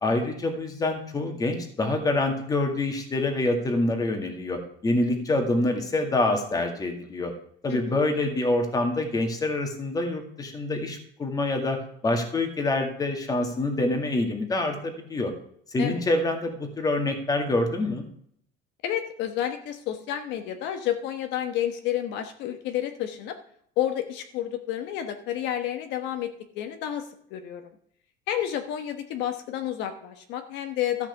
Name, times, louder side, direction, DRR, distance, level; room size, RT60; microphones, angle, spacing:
voice 1, 0.0-7.3 7.6-11.8 12.0-15.3 15.7-18.0, left 2 dB, 20° left, 4 dB, 2.0 m, -26 dB
voice 2, 7.7-8.0 15.8-16.0 18.8-23.4 23.8-27.0 27.3-27.7 28.3-31.1, left 11 dB, 60° left, 7 dB, 1.2 m, -30 dB
13.5 x 5.9 x 7.0 m, 0.65 s
cardioid pair, 155°, 20 cm